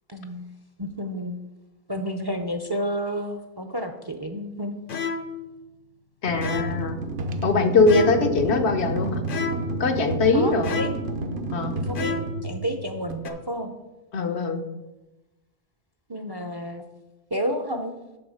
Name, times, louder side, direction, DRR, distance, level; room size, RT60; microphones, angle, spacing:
voice 1, 0.1-0.5 0.8-1.4 1.9-4.8 10.3-10.9 11.8-12.2 12.4-13.7 16.1-16.8 17.3-17.9, equal, 30° right, 6 dB, 0.5 m, -30 dB
sound 1, 4.9-5.5 6.4-6.9 7.9-8.4 9.3-9.8 10.6-11.2 11.9-12.5 13.2-13.3, left 5 dB, 55° left, 0.8 m, -31 dB
voice 2, 6.2-7.0 7.4-9.2 9.8-10.8 11.5-11.7 14.1-14.6, left 3 dB, 80° left, 6 dB, 1.2 m, -21 dB
sound 2, 6.3-13.1, right 2 dB, 70° right, 1.0 m, -31 dB
8.6 x 4.0 x 6.4 m, 1.0 s
omnidirectional pair, 1.1 m